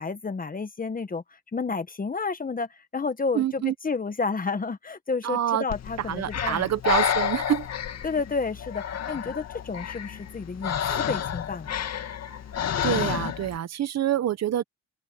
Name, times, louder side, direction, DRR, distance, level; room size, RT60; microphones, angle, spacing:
voice 1, 0.0-6.7 8.0-11.9, left 4 dB, 30° left, 1.5 m, -31 dB
voice 2, 3.3-3.7 5.2-5.6 6.1-7.7 12.8-14.6, right 11 dB, 60° right, 1.1 m, -26 dB
Breathing, 5.7-13.6, left 9 dB, 60° left, 2.2 m, -30 dB
open air
cardioid pair, 90°, 30 cm